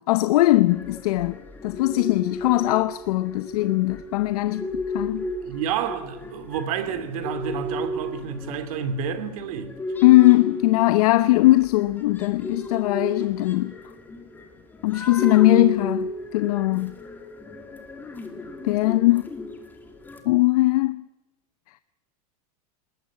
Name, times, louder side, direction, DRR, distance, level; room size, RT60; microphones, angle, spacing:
voice 1, 0.1-1.4 1.6-5.3 10.0-13.7 14.8-17.0 18.6-19.3 20.2-21.1, left 18 dB, 70° left, 0.8 m, -20 dB
sound 1, 0.7-20.2, left 1 dB, 10° left, 2.6 m, -34 dB
voice 2, 5.4-9.8, right 7 dB, 65° right, 2.6 m, -29 dB
20.0 x 18.5 x 8.6 m
supercardioid pair, 150°, 20 cm